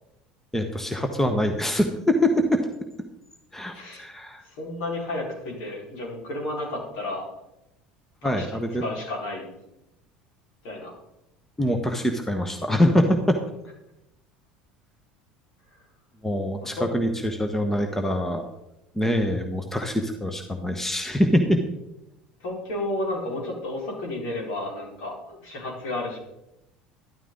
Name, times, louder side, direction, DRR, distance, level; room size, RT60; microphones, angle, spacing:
voice 1, 0.5-2.6 3.5-4.4 8.2-8.8 11.6-13.4 16.2-18.4 18.9-21.6, equal, 5° left, 5 dB, 1.4 m, -24 dB
voice 2, 3.7-4.0 4.4-7.3 8.2-8.5 8.8-9.5 10.6-10.9 16.8-16.9 22.4-26.2, left 2 dB, 60° left, -1 dB, 4.8 m, -32 dB
13.0 x 12.5 x 4.0 m, 0.89 s
figure-of-eight pair, 70°, 5 cm